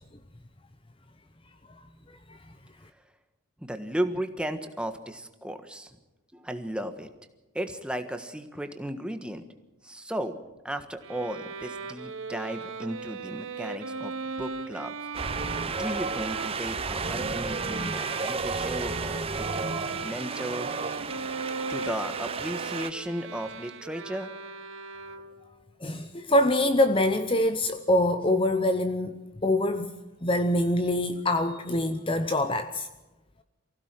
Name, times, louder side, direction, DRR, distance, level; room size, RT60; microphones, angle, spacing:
voice 1, 3.6-6.0 6.3-7.1 7.5-9.4 9.8-10.4 10.6-14.1 14.4-14.9 15.8-19.7 20.0-20.7 21.7-24.3, right 1 dB, 5° right, 7 dB, 1.4 m, -35 dB
Bowed string instrument, 11.0-25.5, right 4 dB, 65° right, 1.2 m, -38 dB
Wind, 15.1-22.9, right 4 dB, 25° right, 0.7 m, -32 dB
voice 2, 25.8-29.9 30.2-32.9, left 1 dB, 25° left, 9 dB, 0.8 m, -24 dB
24.5 x 16.0 x 7.6 m, 1.0 s
head